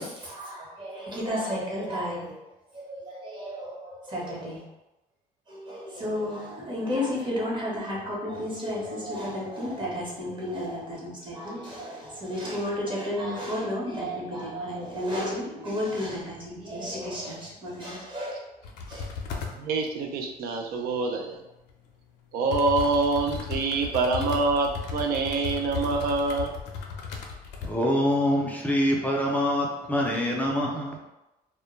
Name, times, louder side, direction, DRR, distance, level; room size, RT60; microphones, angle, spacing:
voice 1, 0.0-2.4 2.7-4.6 5.5-18.4 18.9-19.1, left 1 dB, 30° right, -5 dB, 0.9 m, -32 dB
sound 1, 18.6-19.6 21.7-21.8 22.5-27.8 28.1-28.2, left 5 dB, 80° left, 0.5 m, -35 dB
voice 2, 19.5-21.4 22.3-26.5, right 3 dB, 65° right, 3 dB, 0.4 m, -26 dB
voice 3, 27.6-31.0, equal, 10° left, -2 dB, 0.4 m, -25 dB
2.1 x 2.1 x 3.0 m, 0.97 s
cardioid pair, 110°, 17 cm